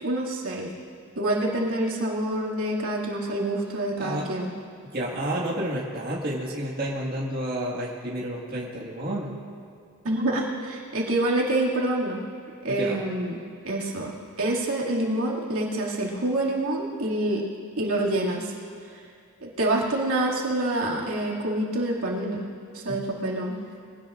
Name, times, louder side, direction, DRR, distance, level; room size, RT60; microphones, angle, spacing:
voice 1, 0.0-0.7 1.2-4.5 10.0-12.2 12.6-13.4 13.6-14.1 14.4-17.4 17.8-18.5 19.4-22.4 22.7-23.5, right 1 dB, 75° right, -4 dB, 2.4 m, -26 dB
voice 2, 4.0-4.3 4.8-9.3 12.7-13.0 22.9-23.0, right 1 dB, 40° right, -5 dB, 1.9 m, -30 dB
23.0 x 17.0 x 2.6 m, 2.4 s
head